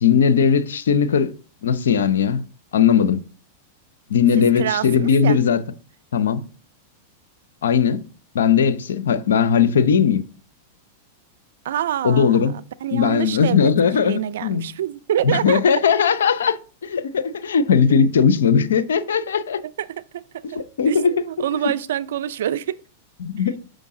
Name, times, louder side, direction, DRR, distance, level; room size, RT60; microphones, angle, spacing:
voice 1, 0.0-1.3 1.6-2.4 2.7-3.2 4.1-5.6 6.1-6.4 7.6-8.0 8.3-10.2 12.0-12.5 12.9-14.7 15.2-19.6 20.5-21.2 23.2-23.6, left 6 dB, 80° left, 0.6 m, -18 dB
voice 2, 4.6-5.4 11.6-15.6 19.6-22.8, right 11 dB, 75° right, 0.4 m, -27 dB
6.2 x 5.1 x 3.8 m
hypercardioid pair, 110°, 0 cm